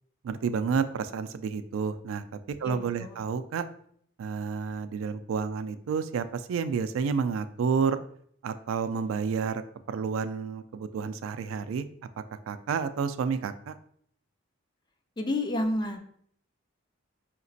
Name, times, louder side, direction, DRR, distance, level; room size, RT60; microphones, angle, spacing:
voice 1, 0.2-3.6 4.2-8.0 8.4-9.6 9.9-11.9 12.5-13.8, right 6 dB, 80° right, 10 dB, 0.3 m, -30 dB
voice 2, 2.6-3.2 15.2-16.0, left 1 dB, 20° left, 6 dB, 0.4 m, -30 dB
5.0 x 2.9 x 2.6 m, 0.64 s
head